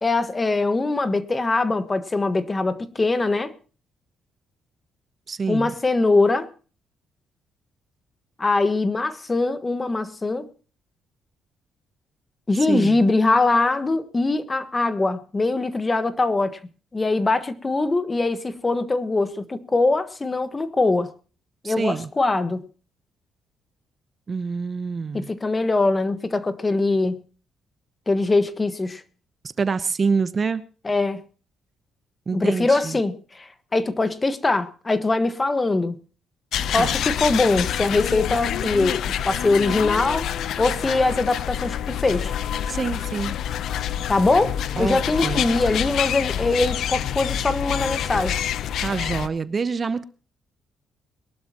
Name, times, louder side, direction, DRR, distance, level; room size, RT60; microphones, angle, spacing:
voice 1, 0.0-3.5 5.5-6.5 8.4-10.5 12.5-16.6 16.9-21.1 21.6-22.6 25.1-27.2 28.1-29.0 30.8-31.2 32.3-36.0 36.7-42.3 44.1-48.4, left 3 dB, 25° left, 1.4 m, -22 dB
voice 2, 5.3-5.7 12.7-13.0 21.6-22.1 24.3-25.3 29.6-30.6 32.3-33.0 36.8-36.9 42.7-43.3 44.8-45.5 48.8-50.0, right 5 dB, 40° right, 0.9 m, -26 dB
sound 1, 36.5-49.3, left 10 dB, 75° left, 0.7 m, -27 dB
22.5 x 12.0 x 3.0 m
cardioid pair, 90°, 0 cm